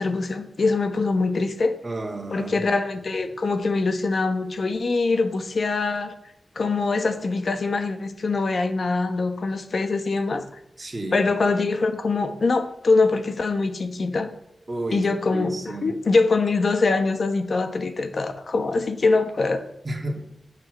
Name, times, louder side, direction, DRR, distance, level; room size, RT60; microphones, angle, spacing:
voice 1, 0.0-1.8 2.3-6.1 6.5-10.4 11.1-14.3 14.9-19.6, left 3 dB, 60° left, 8 dB, 1.2 m, -23 dB
voice 2, 1.8-2.6 10.8-11.3 14.7-15.9 19.8-20.2, right 1 dB, 35° right, 1 dB, 2.2 m, -31 dB
10.0 x 6.6 x 6.5 m, 0.75 s
wide cardioid pair, 105°, 0 cm